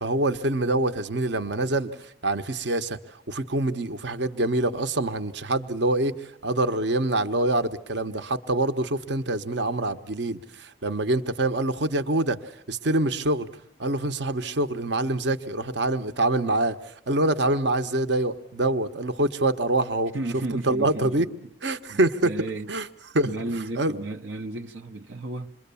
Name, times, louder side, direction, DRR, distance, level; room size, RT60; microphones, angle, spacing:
voice 1, 0.0-1.9 2.2-3.0 3.3-6.1 6.4-12.4 12.7-13.5 13.8-16.8 17.1-20.1 20.5-21.3 21.6-22.3 22.7-22.9 23.1-23.3 23.8-23.9, right 2 dB, 65° right, 1.0 m, -25 dB
voice 2, 20.1-21.3 21.9-22.7 23.2-25.5, right 2 dB, 90° right, 1.0 m, -33 dB
28.0 x 22.5 x 7.0 m
head